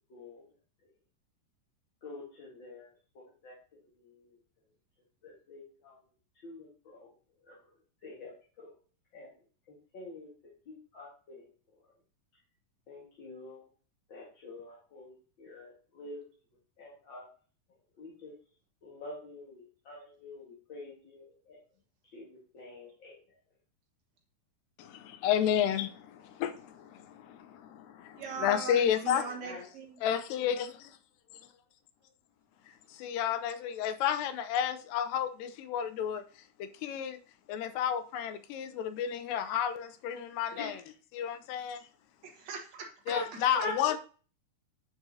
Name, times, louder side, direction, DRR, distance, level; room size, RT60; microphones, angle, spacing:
voice 1, 0.1-0.4 2.0-2.9 3.2-3.5 5.2-6.0 6.4-7.1 7.5-7.6 8.0-8.3 8.6-8.7 9.1-9.3 9.9-10.3 10.7-11.5 12.9-13.6 14.1-16.3 16.8-17.3 18.0-18.3 18.8-21.6 22.1-23.2 29.4-29.6 40.5-40.8 43.1-43.2 43.5-43.7, left 3 dB, 45° left, 1.8 m, -45 dB
voice 2, 24.8-29.3 30.0-31.0 31.4-31.5 32.7-37.2 37.5-40.8 41.1-41.9 43.1-44.0, left 9 dB, 80° left, 2.3 m, -32 dB
voice 3, 28.2-30.0 42.2-42.9, right 5 dB, 55° right, 2.3 m, -40 dB
9.4 x 5.2 x 2.8 m
omnidirectional pair, 4.1 m